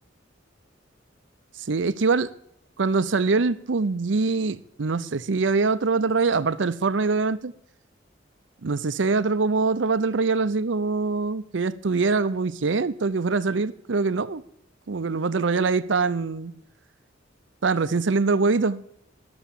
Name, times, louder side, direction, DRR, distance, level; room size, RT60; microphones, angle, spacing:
voice 1, 1.7-2.3 2.8-7.5 8.6-14.4 14.9-16.5 17.6-18.8, right 4 dB, 70° right, 0.6 m, -23 dB
13.5 x 7.0 x 7.2 m
head